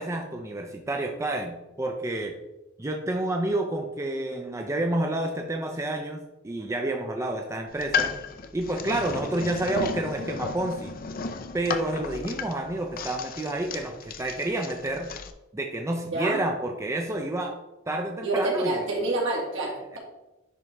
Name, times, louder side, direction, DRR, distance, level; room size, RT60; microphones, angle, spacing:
voice 1, 0.0-2.3 2.8-8.2 8.5-10.9 11.5-15.1 15.5-17.6 17.9-18.9, right 1 dB, 15° right, 3 dB, 0.4 m, -29 dB
sound 1, 7.7-15.3, left 5 dB, 45° left, 0.5 m, -34 dB
voice 2, 18.2-20.0, right 2 dB, 65° right, -3 dB, 2.1 m, -27 dB
10.5 x 3.6 x 3.3 m, 1.0 s
head